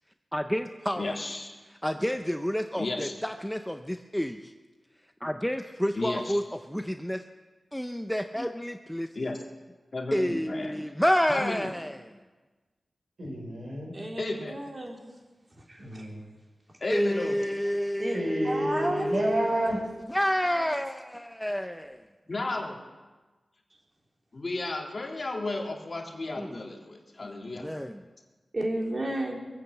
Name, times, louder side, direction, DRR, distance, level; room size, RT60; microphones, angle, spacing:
voice 1, 0.3-1.1 1.8-4.5 5.2-7.2 7.7-9.1 10.1-12.1 16.9-19.5 20.1-22.0 26.4-26.6 27.2-28.0, equal, 5° left, 6 dB, 0.6 m, -29 dB
voice 2, 0.9-1.5 2.8-3.1 6.0-6.4 9.2-9.4 9.9-10.8 11.3-11.7 14.2-14.6 16.8-17.4 22.3-22.8 24.3-27.7, left 2 dB, 45° left, 0 dB, 2.1 m, -33 dB
voice 3, 13.2-14.0 15.8-16.3 18.1-19.8, right 1 dB, 65° right, -1 dB, 5.1 m, -30 dB
voice 4, 13.9-15.0 15.7-16.2 18.0-19.1 28.5-29.4, right 1 dB, 35° right, -1 dB, 3.2 m, -32 dB
22.0 x 8.4 x 7.9 m, 1.3 s
wide cardioid pair, 95°, 0 cm